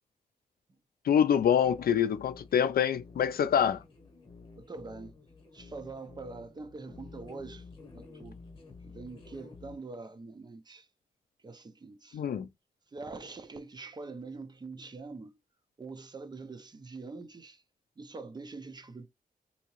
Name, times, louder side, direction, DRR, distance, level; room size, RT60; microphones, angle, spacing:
voice 1, 1.1-3.8 12.1-12.5, left 8 dB, 70° left, 0.4 m, -25 dB
sound 1, 1.3-9.8, left 4 dB, 30° left, 0.9 m, -51 dB
voice 2, 4.6-5.2 5.5-7.7 7.9-8.4 8.8-10.9 11.4-12.2 12.9-15.4 15.8-17.6 18.0-19.1, right 3 dB, 25° right, 0.4 m, -44 dB
3.6 x 2.8 x 2.9 m
wide cardioid pair, 165°, 16 cm